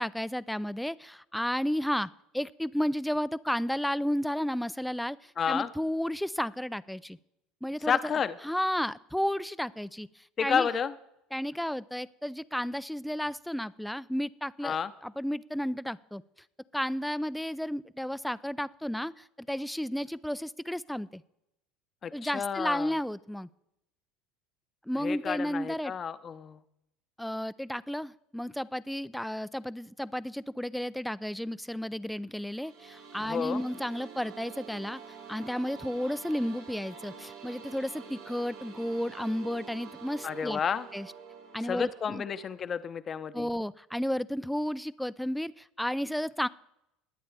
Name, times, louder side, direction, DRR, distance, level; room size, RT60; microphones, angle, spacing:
voice 1, 0.0-7.2 7.6-8.0 8.4-10.1 10.4-10.7 11.3-16.2 16.7-21.2 22.1-23.5 24.9-25.9 27.2-35.0 35.3-40.6 40.9-41.1 41.5-42.2 43.3-46.5, equal, 5° left, 17 dB, 0.4 m, -32 dB
voice 2, 5.4-5.7 7.8-8.4 10.4-10.9 14.6-14.9 22.0-22.9 25.0-26.6 33.2-33.6 40.2-40.9 41.7-43.5, left 7 dB, 35° left, 12 dB, 0.7 m, -31 dB
sound 1, 32.3-42.5, right 6 dB, 90° right, 5.9 m, -47 dB
20.5 x 8.6 x 3.4 m, 0.86 s
hypercardioid pair, 85°, 0 cm